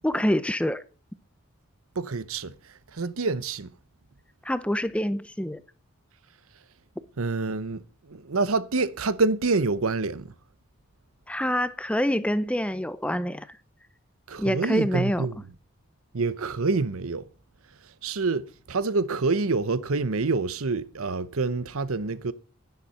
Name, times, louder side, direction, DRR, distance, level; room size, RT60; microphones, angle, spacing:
voice 1, 0.0-0.8 4.4-5.6 11.3-13.6 14.4-15.3, equal, 5° left, 0.5 m, -26 dB
voice 2, 2.0-2.5 2.9-3.7 7.2-7.8 8.1-10.3 14.3-15.4 16.1-17.3 18.0-22.3, right 3 dB, 75° right, 0.8 m, -27 dB
10.5 x 10.5 x 5.5 m
head